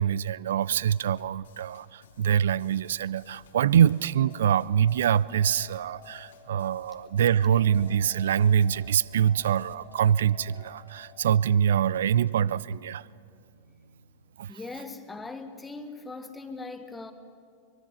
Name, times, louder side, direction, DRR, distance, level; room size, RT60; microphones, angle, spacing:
voice 1, 0.0-13.1 14.4-14.5, right 9 dB, 60° right, 21 dB, 0.4 m, -24 dB
sound 1, 0.6-9.7, left 3 dB, 65° left, 1.5 m, -58 dB
sound 2, 4.2-11.6, left 9 dB, 30° left, 1.7 m, -52 dB
sound 3, 7.4-14.8, right 3 dB, 80° right, 1.0 m, -53 dB
voice 2, 14.5-17.1, left 3 dB, 10° left, 9 dB, 1.3 m, -40 dB
24.0 x 22.5 x 5.6 m, 2.4 s
figure-of-eight pair, 90°, 0 cm